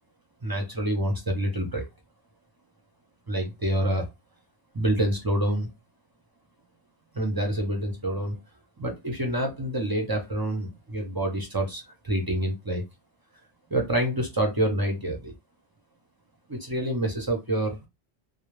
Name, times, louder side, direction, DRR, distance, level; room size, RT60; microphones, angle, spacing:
voice 1, 0.4-1.8 3.3-4.1 4.7-5.7 7.1-8.4 8.8-12.8 13.7-15.3 16.5-17.8, right 1 dB, 35° right, 2 dB, 0.3 m, -27 dB
2.2 x 2.0 x 3.0 m, 0.22 s
omnidirectional pair, 1.2 m